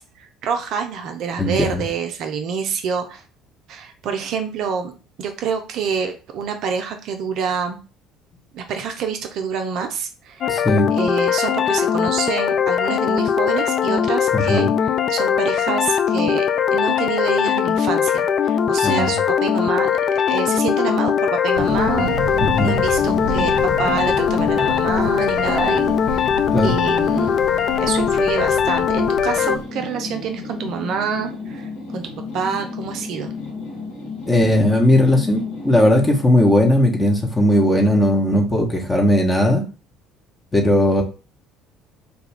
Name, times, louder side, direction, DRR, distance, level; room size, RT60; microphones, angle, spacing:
voice 1, 0.0-3.2 3.7-7.8 8.5-10.4 10.9-19.9 20.3-26.3 26.6-27.4 27.8-33.3, right 6 dB, 55° right, 5 dB, 0.4 m, -27 dB
voice 2, 1.4-1.8 10.5-10.9 14.3-14.7 18.8-19.1 22.4-22.8 26.5-26.8 34.3-39.6 40.5-41.0, left 1 dB, 20° left, 2 dB, 1.0 m, -17 dB
sound 1, 10.4-29.6, left 8 dB, 45° left, 0.3 m, -20 dB
sound 2, 21.5-29.6, right 1 dB, 90° left, 1.5 m, -30 dB
sound 3, 29.3-36.4, left 4 dB, 70° left, 1.2 m, -33 dB
2.9 x 2.3 x 3.5 m, 0.33 s
figure-of-eight pair, 60°, 0 cm